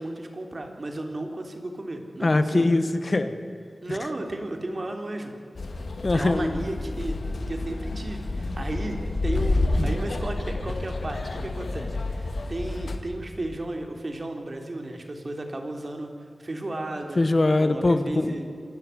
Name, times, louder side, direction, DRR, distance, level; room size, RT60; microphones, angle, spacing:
voice 1, 0.0-2.7 3.8-5.3 6.1-7.2 7.5-16.1 16.4-17.2 17.6-18.5, right 1 dB, 45° right, 4 dB, 3.3 m, -34 dB
voice 2, 2.2-3.4 3.9-4.0 6.0-6.9 9.8-9.9 17.2-18.4, left 2 dB, 45° left, 10 dB, 1.3 m, -23 dB
sound 1, 5.6-13.0, left 2 dB, 80° left, 2.1 m, -29 dB
27.0 x 12.5 x 9.6 m, 2.5 s
wide cardioid pair, 70°, 0 cm